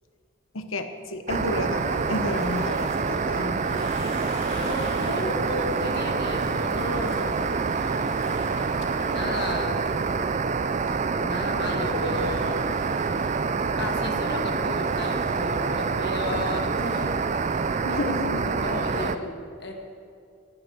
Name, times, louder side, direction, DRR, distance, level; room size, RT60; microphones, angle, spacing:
voice 1, 0.5-3.9 17.8-18.5, left 2 dB, 85° left, 8 dB, 1.1 m, -31 dB
sound 1, 1.3-17.8, left 1 dB, 30° left, 3.6 m, -43 dB
sound 2, 1.3-19.2, right 4 dB, 35° right, 0.4 m, -26 dB
voice 2, 4.5-7.5 9.0-10.0 11.2-12.7 13.8-17.2 17.8-19.7, left 2 dB, 55° left, 1 dB, 1.9 m, -33 dB
18.0 x 6.4 x 8.0 m, 2.4 s
head